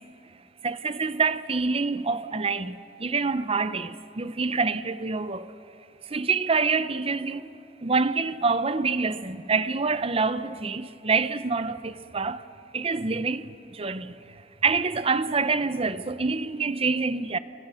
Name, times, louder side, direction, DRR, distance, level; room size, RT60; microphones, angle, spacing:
voice 1, 0.6-5.5 6.1-7.5 7.8-12.4 12.7-14.2 14.6-17.4, right 4 dB, 35° right, 0.7 m, -26 dB
28.0 x 24.0 x 5.7 m
head